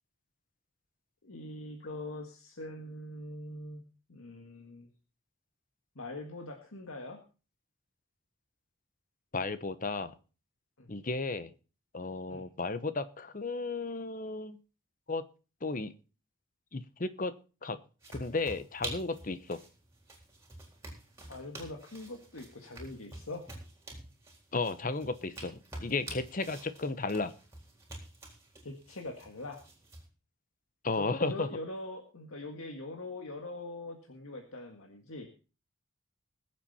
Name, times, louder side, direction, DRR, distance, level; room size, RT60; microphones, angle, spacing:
voice 1, 1.2-3.8 4.1-4.9 6.0-7.2 10.8-10.9 12.3-12.5 21.3-23.4 28.6-29.6 30.9-35.3, left 2 dB, 80° left, 2 dB, 1.8 m, -42 dB
voice 2, 9.3-10.1 10.9-11.5 11.9-14.6 15.1-15.2 15.6-15.9 16.7-17.3 17.6-17.8 18.1-19.6 24.5-27.3 30.8-31.5, left 3 dB, 40° left, 13 dB, 0.9 m, -34 dB
sound 1, 18.0-30.0, right 2 dB, 15° right, 3.9 m, -48 dB
21.0 x 7.6 x 4.3 m, 0.35 s
head